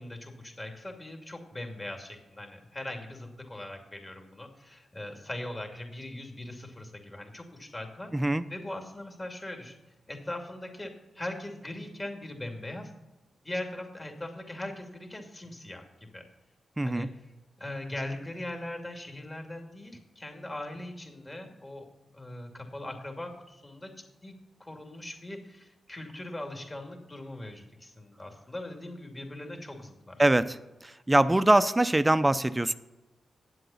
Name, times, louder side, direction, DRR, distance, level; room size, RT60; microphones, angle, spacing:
voice 1, 0.0-9.8 10.1-12.9 13.4-16.3 16.8-17.3 17.6-21.9 22.1-24.3 24.6-30.2, left 1 dB, 25° left, 4 dB, 2.5 m, -40 dB
voice 2, 8.1-8.4 16.8-17.1 30.2-30.6 31.1-32.7, right 1 dB, 20° right, 14 dB, 0.6 m, -23 dB
9.2 x 7.7 x 7.1 m, 1.1 s
supercardioid pair, 50°, 0 cm